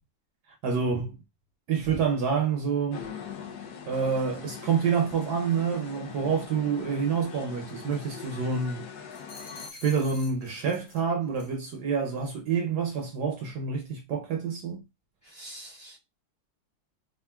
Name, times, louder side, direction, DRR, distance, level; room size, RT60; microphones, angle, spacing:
voice 1, 0.6-1.2 1.7-3.0 3.9-8.8 9.8-14.8, right 6 dB, 70° right, 1.0 m, -27 dB
sound 1, 2.9-9.7, left 7 dB, 70° left, 1.0 m, -42 dB
sound 2, 9.1-11.0 11.3-11.6, left 4 dB, 85° left, 1.6 m, -47 dB
voice 2, 15.2-16.0, right 1 dB, 40° left, 1.0 m, -45 dB
3.6 x 2.4 x 2.2 m
omnidirectional pair, 2.1 m